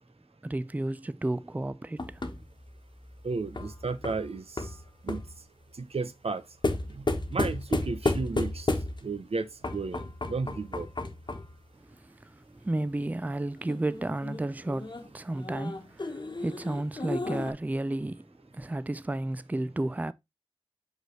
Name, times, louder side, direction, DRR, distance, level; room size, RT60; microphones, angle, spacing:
voice 1, 0.4-2.2 11.8-20.1, right 1 dB, 15° right, 0.4 m, -33 dB
sound 1, 2.0-5.4 6.6-9.2 9.6-11.6 13.7-17.5, left 2 dB, 50° left, 1.2 m, -33 dB
voice 2, 3.2-4.7 5.0-5.2 5.8-6.4 6.9-8.7 9.0-10.9, right 4 dB, 90° right, 0.7 m, -33 dB
6.1 x 5.3 x 3.0 m
wide cardioid pair, 70°, 10 cm